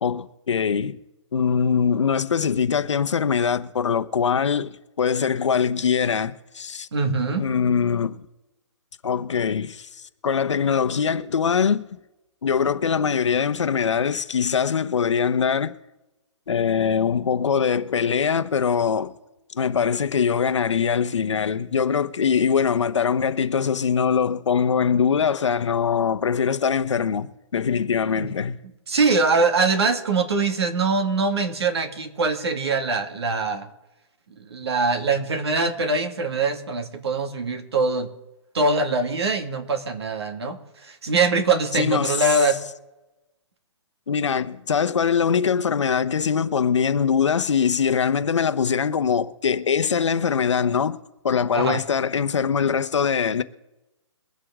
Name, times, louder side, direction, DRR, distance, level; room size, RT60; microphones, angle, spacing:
voice 1, 0.0-1.0 1.3-6.9 7.4-8.3 9.0-9.9 10.2-11.9 12.4-15.8 16.5-19.1 19.5-28.6 41.7-42.3 44.1-53.4, left 6 dB, 75° left, 1.0 m, -22 dB
voice 2, 6.9-7.5 28.2-28.3 28.9-33.7 34.4-38.1 38.5-42.6 51.5-51.8, right 3 dB, 60° right, 2.1 m, -23 dB
23.0 x 8.0 x 3.7 m
hypercardioid pair, 175°, 15 cm